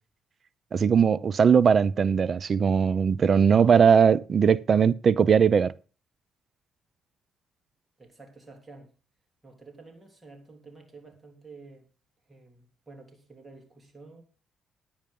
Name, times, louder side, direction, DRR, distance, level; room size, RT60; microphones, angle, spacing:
voice 1, 0.7-5.7, right 6 dB, 45° right, 0.6 m, -20 dB
voice 2, 8.0-8.9 9.4-11.9 12.3-14.2, right 3 dB, 15° right, 3.4 m, -50 dB
10.5 x 8.9 x 5.3 m
cardioid pair, 90°, 0 cm